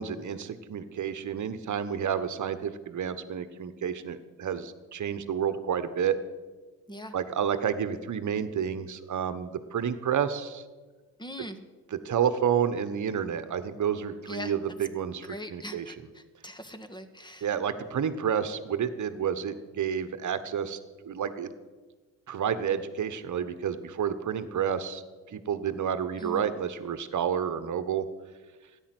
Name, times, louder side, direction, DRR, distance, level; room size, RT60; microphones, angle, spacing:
voice 1, 0.0-6.2 7.1-10.6 11.9-15.9 17.4-20.8 21.0-21.5 22.3-25.0 25.3-28.0, right 8 dB, 50° right, 12 dB, 1.4 m, -30 dB
voice 2, 11.2-11.6 14.3-14.6 15.3-17.5 26.2-26.5, left 1 dB, 10° left, 9 dB, 1.7 m, -41 dB
13.0 x 10.0 x 8.0 m, 1.3 s
supercardioid pair, 60°, 39 cm